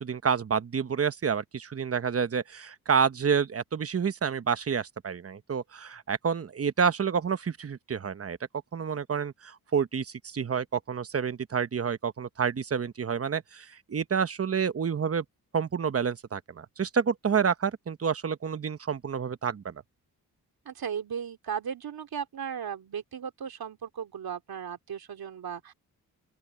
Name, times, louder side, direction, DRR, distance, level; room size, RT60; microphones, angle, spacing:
voice 1, 0.0-8.4 8.7-15.2 15.5-19.8, right 6 dB, 40° right, 1.0 m, -29 dB
voice 2, 20.6-25.7, right 7 dB, 75° right, 2.7 m, -36 dB
open air
cardioid pair, 70°, 37 cm